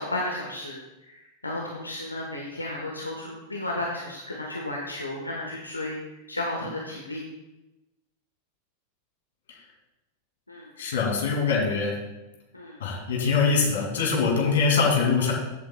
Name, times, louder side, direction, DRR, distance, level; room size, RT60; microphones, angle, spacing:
voice 1, 0.0-7.2 10.5-10.7 12.5-12.8, left 1 dB, 85° left, -1 dB, 1.3 m, -33 dB
voice 2, 10.8-12.0 12.8-15.3, left 5 dB, 60° left, 0 dB, 2.6 m, -23 dB
14.5 x 8.1 x 2.3 m, 1.0 s
figure-of-eight pair, 90°, 0 cm